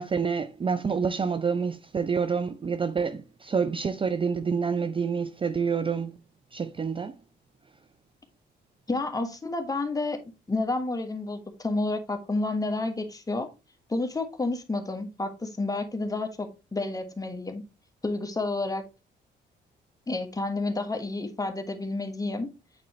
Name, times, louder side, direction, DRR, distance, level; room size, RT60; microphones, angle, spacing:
voice 1, 0.0-6.2 6.5-7.1, right 6 dB, 25° right, 0.4 m, -28 dB
voice 2, 8.9-10.2 10.5-13.5 13.9-17.6 18.0-18.8 20.1-22.5, left 2 dB, 20° left, 1.4 m, -30 dB
8.7 x 4.2 x 3.1 m
cardioid pair, 90°, 20 cm